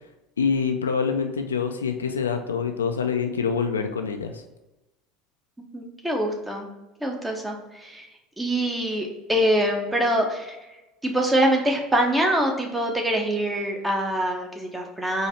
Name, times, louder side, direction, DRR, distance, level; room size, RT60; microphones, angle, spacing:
voice 1, 0.4-4.4, left 6 dB, 80° left, 6 dB, 0.4 m, -25 dB
voice 2, 5.7-6.7 7.0-8.1 8.4-10.6 11.0-15.3, right 1 dB, 10° right, 1 dB, 1.0 m, -24 dB
4.4 x 2.7 x 4.2 m, 1.0 s
figure-of-eight pair, 70°, 0 cm